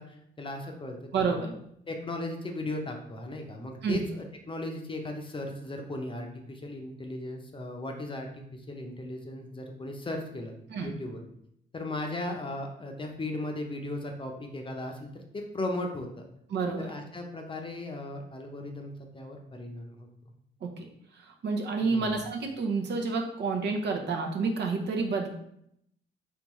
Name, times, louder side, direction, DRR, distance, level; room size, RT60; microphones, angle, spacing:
voice 1, 0.0-1.3 1.9-10.5 10.8-11.2 11.7-16.2 16.8-20.1 21.8-22.2, left 1 dB, 25° left, 2 dB, 0.7 m, -37 dB
voice 2, 1.1-1.5 3.8-4.0 10.7-10.9 16.5-16.9 20.6-25.3, right 4 dB, 60° right, 2 dB, 0.8 m, -29 dB
3.7 x 3.5 x 3.1 m, 0.73 s
cardioid pair, 90°, 20 cm